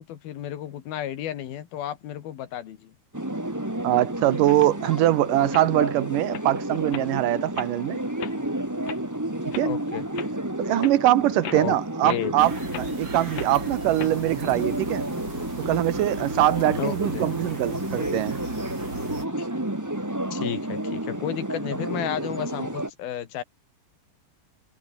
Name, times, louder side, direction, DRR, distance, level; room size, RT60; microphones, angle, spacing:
voice 1, 0.0-2.9 9.6-10.1 11.5-11.8 12.0-12.4 16.8-17.3 19.4-19.5 20.3-23.4, left 11 dB, 70° left, 3.6 m, -32 dB
sound 1, 3.1-22.9, right 1 dB, 10° right, 1.3 m, -31 dB
voice 2, 3.8-8.0 9.6-9.7 10.6-12.5 12.8-15.1 15.6-18.4, right 14 dB, 70° right, 2.2 m, -23 dB
sound 2, 4.5-5.0 5.4-5.7 6.1-6.5 6.9-7.1 7.6-7.7 8.2-8.4 8.9-9.0 9.5-9.7 10.1-10.3 10.8-11.0 11.4-11.7 12.1-12.2 12.7-12.9 13.3-13.5 14.0-14.1, left 10 dB, 55° left, 2.2 m, -37 dB
sound 3, 12.4-19.3, right 3 dB, 30° right, 6.3 m, -38 dB
omnidirectional pair, 4.5 m